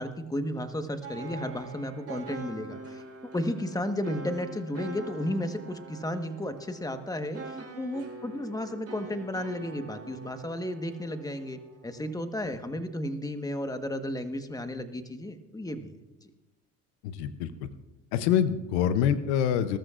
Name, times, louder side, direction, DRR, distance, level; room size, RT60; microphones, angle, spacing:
voice 1, 0.0-3.0 3.3-15.9 16.2-16.3, left 1 dB, 10° left, 8 dB, 1.3 m, -33 dB
sound 1, 1.0-12.1, right 3 dB, 45° right, 3.1 m, -44 dB
voice 2, 17.0-17.7 18.1-19.8, left 9 dB, 90° left, 12 dB, 0.8 m, -26 dB
20.5 x 13.0 x 2.5 m, 1.0 s
supercardioid pair, 70°, 34 cm